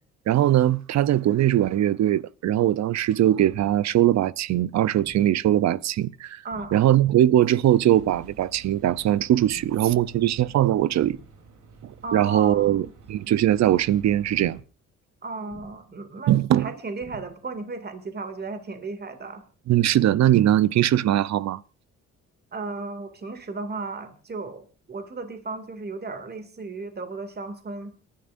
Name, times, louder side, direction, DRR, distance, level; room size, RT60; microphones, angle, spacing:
voice 1, 0.3-6.4 6.7-11.2 11.8-14.6 16.3-16.7 19.7-21.6, right 12 dB, 65° right, 0.7 m, -21 dB
sound 1, 3.5-4.0 5.0-5.5 6.5-7.0 8.0-8.5 9.5-10.0 11.0-11.5 12.5-13.0 14.0-14.5 15.5-16.0 17.0-17.5, left 2 dB, 35° left, 3.0 m, -49 dB
voice 2, 6.4-6.8 12.0-12.8 15.2-19.5 22.5-27.9, right 3 dB, 35° right, 2.4 m, -35 dB
sound 2, 7.7-14.6, right 3 dB, 80° right, 3.4 m, -50 dB
29.5 x 11.5 x 2.6 m
cardioid pair, 90°, 30 cm